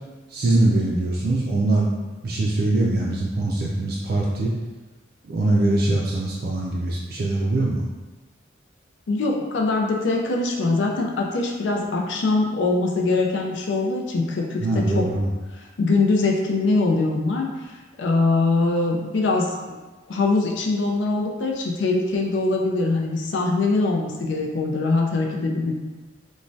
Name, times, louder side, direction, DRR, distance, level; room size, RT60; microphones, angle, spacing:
voice 1, 0.3-1.9 2.2-4.5 5.2-7.9 14.6-15.3, right 2 dB, 55° right, -3 dB, 0.3 m, -22 dB
voice 2, 9.1-15.1 15.8-17.5 18.0-19.8 20.1-25.7, left 3 dB, 80° left, 0 dB, 0.4 m, -22 dB
3.1 x 2.2 x 2.6 m, 1.2 s
head